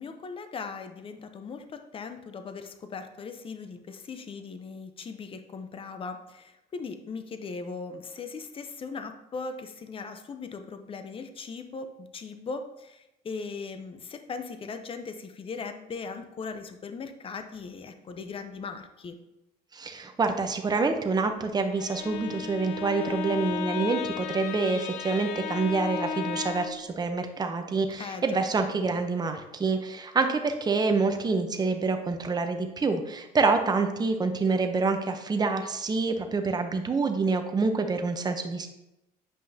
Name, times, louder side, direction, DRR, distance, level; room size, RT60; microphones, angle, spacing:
voice 1, 0.0-19.2 28.0-28.4, left 4 dB, 30° left, 8 dB, 0.7 m, -39 dB
voice 2, 19.7-38.7, right 4 dB, 25° right, 6 dB, 0.7 m, -27 dB
Bowed string instrument, 21.7-26.9, left 7 dB, 85° left, 0.6 m, -34 dB
7.8 x 5.4 x 2.8 m, 0.92 s
cardioid pair, 110°, 17 cm